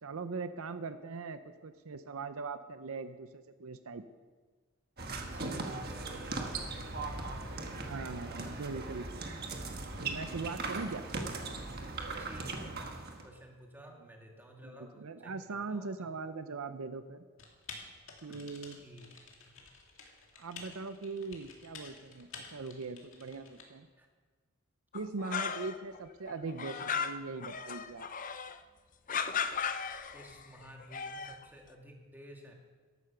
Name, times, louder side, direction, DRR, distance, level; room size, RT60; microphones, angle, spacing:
voice 1, 0.0-4.0 7.8-9.3 10.0-11.0 14.6-17.2 18.2-18.8 20.4-23.9 24.9-28.1, right 4 dB, 70° right, 11 dB, 0.6 m, -41 dB
sound 1, 5.0-13.3, right 3 dB, 45° right, 1.4 m, -39 dB
voice 2, 5.3-8.7 12.2-12.8 13.2-14.9 15.2-16.1 18.3-18.4 18.8-19.3 24.0-24.1 30.1-32.5, equal, 10° right, 0 dB, 1.9 m, -52 dB
Typing, 17.4-23.6, left 4 dB, 60° left, 2.4 m, -51 dB
sound 2, 24.9-26.0 26.3-28.6 29.1-30.4 30.8-31.4, left 6 dB, 35° left, 0.5 m, -36 dB
14.5 x 11.5 x 5.9 m, 1.5 s
head